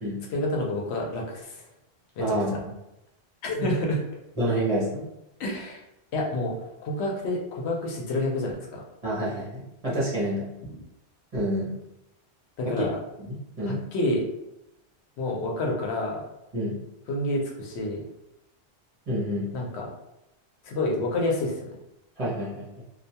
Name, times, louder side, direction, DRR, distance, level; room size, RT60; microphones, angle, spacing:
voice 1, 0.3-1.7 2.2-2.3 3.4-4.0 5.4-5.8 6.1-8.8 12.6-12.9 13.7-14.2 15.2-16.2 17.1-18.0 19.5-19.9 20.6-21.7, left 1 dB, 85° left, -1 dB, 0.9 m, -28 dB
voice 2, 2.2-2.7 3.5-3.7 4.4-5.0 9.0-10.5 11.3-11.7 12.6-12.9 13.2-13.8 16.5-16.8 19.1-19.5 22.2-22.8, equal, 40° right, -7 dB, 0.8 m, -28 dB
2.3 x 2.2 x 2.7 m, 0.87 s
omnidirectional pair, 1.1 m